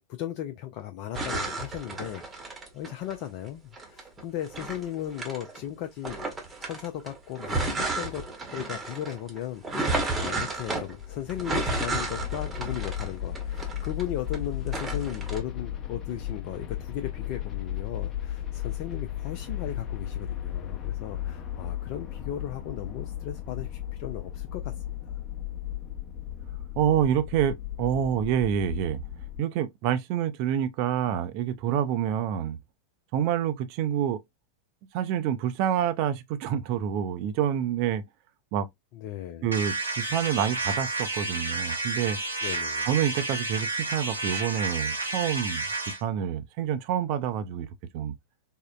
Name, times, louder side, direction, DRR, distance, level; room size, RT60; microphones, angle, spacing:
voice 1, 0.1-2.2 2.7-6.2 6.6-8.2 8.5-24.7 25.1-25.2 38.9-39.5 42.4-42.9, left 11 dB, 45° left, 0.4 m, -36 dB
sound 1, 1.1-3.2 3.7-5.6 6.0-14.4 14.7-15.4, right 3 dB, 15° right, 0.9 m, -32 dB
sound 2, 10.5-29.4, left 11 dB, 25° left, 0.8 m, -35 dB
voice 2, 26.8-29.0 29.4-32.6 33.1-34.2 34.9-38.0 38.5-38.7 39.4-42.2 42.9-47.7 47.9-48.1, right 9 dB, 45° right, 0.4 m, -27 dB
sound 3, 39.5-46.0, right 3 dB, 80° right, 0.7 m, -31 dB
3.6 x 2.0 x 2.3 m
figure-of-eight pair, 90°, 0 cm